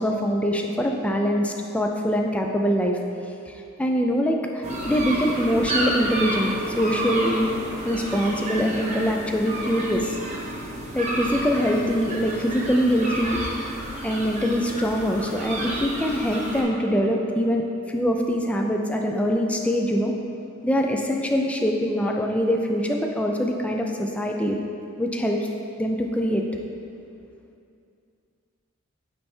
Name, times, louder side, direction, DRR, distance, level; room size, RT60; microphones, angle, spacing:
voice 1, 0.0-3.0 3.8-7.5 7.8-10.1 10.9-13.4 14.0-20.1 20.6-24.6 25.0-25.4 25.8-26.4, equal, 5° left, 2 dB, 0.4 m, -23 dB
sound 1, 4.6-16.6, right 1 dB, 35° right, 1.0 m, -31 dB
9.0 x 3.3 x 4.3 m, 2.5 s
head